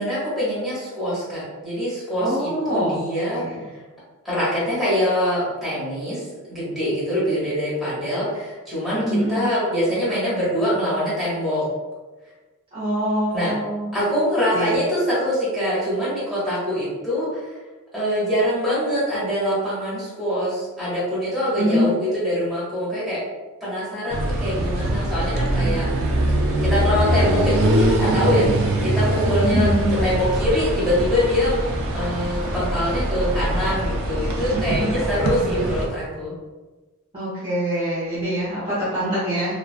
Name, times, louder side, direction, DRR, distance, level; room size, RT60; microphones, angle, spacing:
voice 1, 0.0-3.6 4.2-9.0 9.3-11.6 13.3-13.5 13.9-17.6 17.9-23.2 23.6-25.9 26.3-29.7 30.0-31.6 31.9-36.3, equal, ahead, -11 dB, 1.1 m, -24 dB
voice 2, 2.2-3.0 3.3-3.7 8.9-9.4 12.7-13.9 14.5-14.8 21.6-21.9 25.6-25.7 29.4-30.1 34.8-34.9 37.1-39.6, equal, 25° right, -11 dB, 0.7 m, -24 dB
sound 1, 24.1-35.9, right 1 dB, 60° right, 0.4 m, -22 dB
2.4 x 2.3 x 2.4 m, 1.2 s
head